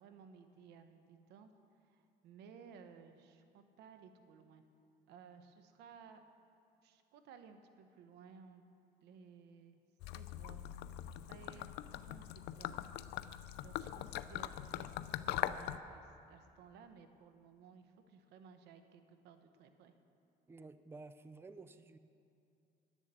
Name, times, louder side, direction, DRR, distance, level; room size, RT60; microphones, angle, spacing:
voice 1, 0.0-1.5 1.8-4.6 5.1-6.2 6.8-8.6 9.0-9.8 10.1-10.6 11.0-12.9 13.6-19.9, right 6 dB, 85° right, 8 dB, 0.9 m, -58 dB
Gurgling / Liquid, 10.0-15.8, left 13 dB, 90° left, 0.4 m, -42 dB
voice 2, 20.5-22.0, right 3 dB, 15° right, 11 dB, 0.4 m, -53 dB
11.0 x 7.2 x 8.0 m, 2.6 s
cardioid pair, 110°, 17 cm